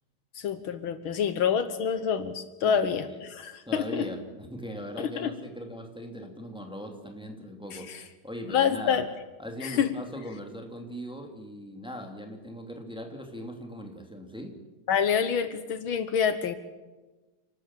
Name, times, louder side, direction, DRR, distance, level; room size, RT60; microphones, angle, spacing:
voice 1, 0.4-4.1 5.0-5.3 7.7-8.0 8.5-9.1 9.6-9.9 14.9-16.6, left 7 dB, 70° left, 11 dB, 1.8 m, -27 dB
voice 2, 2.6-3.2 3.6-9.0 9.4-14.5, equal, ahead, 3 dB, 2.4 m, -40 dB
29.5 x 13.0 x 7.3 m, 1.2 s
omnidirectional pair, 2.4 m